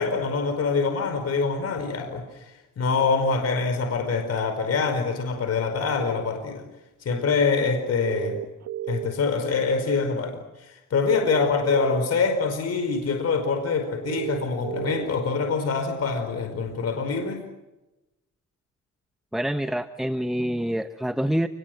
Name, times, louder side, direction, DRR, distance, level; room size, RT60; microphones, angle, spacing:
voice 1, 0.0-6.6 7.0-8.4 8.9-17.4, left 4 dB, 55° left, 6 dB, 5.0 m, -25 dB
sound 1, 6.0-6.1 8.0-9.3 11.0-12.0 14.0-15.0, right 12 dB, 60° right, 1.7 m, -32 dB
voice 2, 19.3-21.5, equal, ahead, 10 dB, 1.0 m, -26 dB
29.5 x 21.0 x 7.9 m, 1.0 s
cardioid pair, 90°, 30 cm